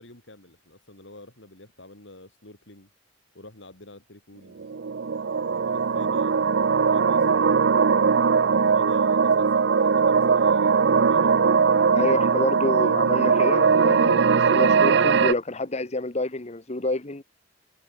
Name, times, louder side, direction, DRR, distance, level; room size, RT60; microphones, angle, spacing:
voice 1, 0.0-2.9 3.3-4.7 5.4-7.8 8.5-11.6, left 2 dB, 70° left, 4.7 m, -48 dB
sound 1, 4.6-15.3, right 5 dB, 65° right, 0.5 m, -20 dB
voice 2, 11.9-17.2, left 2 dB, 35° left, 1.3 m, -28 dB
head